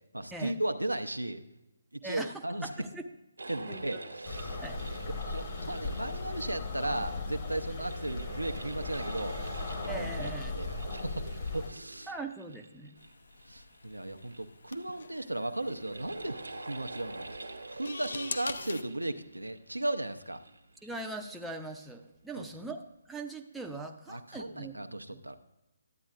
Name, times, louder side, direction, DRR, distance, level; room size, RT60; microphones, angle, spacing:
voice 1, 0.1-1.4 1.9-2.7 3.5-4.6 5.2-9.4 9.8-12.1 13.4-17.3 17.7-20.4 22.4-22.5 24.1-25.4, right 1 dB, 85° right, 8 dB, 0.6 m, -36 dB
voice 2, 2.0-3.1 3.7-3.8 4.6-4.8 9.9-10.6 12.1-12.9 20.8-22.8 23.1-25.2, right 2 dB, 5° right, 2 dB, 0.5 m, -41 dB
sound 1, 3.4-22.0, right 2 dB, 70° right, 1.1 m, -47 dB
sound 2, 4.2-11.7, left 3 dB, 35° left, 1.1 m, -37 dB
sound 3, 13.0-18.8, left 4 dB, 60° left, 0.6 m, -44 dB
12.0 x 8.6 x 2.4 m, 0.93 s
figure-of-eight pair, 140°, 0 cm